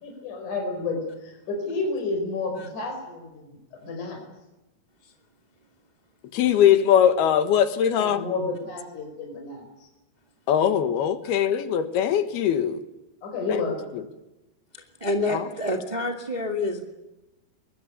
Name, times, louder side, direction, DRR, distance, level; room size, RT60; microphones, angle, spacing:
voice 1, 0.0-4.2 7.9-9.9 13.2-13.9, left 3 dB, 50° left, 3 dB, 5.9 m, -31 dB
voice 2, 6.3-8.2 10.5-12.8 13.5-13.6 15.3-15.5, left 9 dB, 70° left, 9 dB, 3.3 m, -21 dB
voice 3, 14.7-16.8, left 2 dB, 30° right, 3 dB, 0.8 m, -28 dB
23.5 x 21.5 x 8.7 m, 1.0 s
omnidirectional pair, 4.8 m